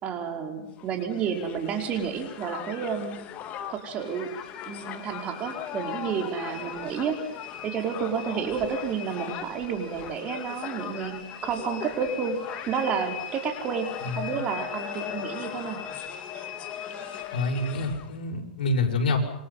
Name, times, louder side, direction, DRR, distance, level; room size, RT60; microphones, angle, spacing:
voice 1, 0.0-3.2 3.7-4.3 4.7-7.2 7.6-12.4 12.7-15.8, right 6 dB, 25° right, 5 dB, 5.0 m, -30 dB
Crowd, 0.8-18.2, left 9 dB, 30° left, 2.3 m, -39 dB
sound 1, 4.0-17.7, left 7 dB, 65° left, 5.9 m, -43 dB
voice 2, 14.0-14.4 17.3-19.2, left 2 dB, 90° left, 3 dB, 6.4 m, -27 dB
28.5 x 24.0 x 5.8 m, 0.82 s
supercardioid pair, 150°, 5 cm